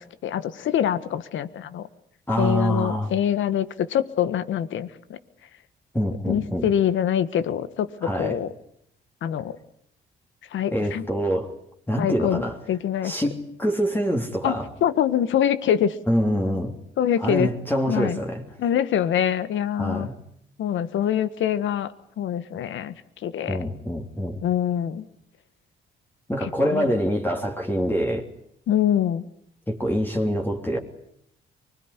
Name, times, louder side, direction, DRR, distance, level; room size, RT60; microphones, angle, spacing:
voice 1, 0.0-1.9 2.4-5.2 6.3-8.5 9.2-9.6 10.5-11.1 12.0-13.1 14.4-16.0 17.0-17.5 17.9-18.2 18.6-20.1 20.6-23.0 23.2-23.6 24.4-25.1 26.4-27.0 28.7-29.3, left 10 dB, 75° left, 13 dB, 1.6 m, -25 dB
voice 2, 2.3-3.1 5.9-6.7 8.0-8.4 10.7-11.5 11.9-12.6 13.0-14.7 16.1-16.8 17.2-18.4 19.8-20.1 23.5-24.4 26.3-28.3 29.7-30.8, equal, 10° left, 1 dB, 3.4 m, -25 dB
24.5 x 20.5 x 9.9 m, 0.72 s
cardioid pair, 90°, 20 cm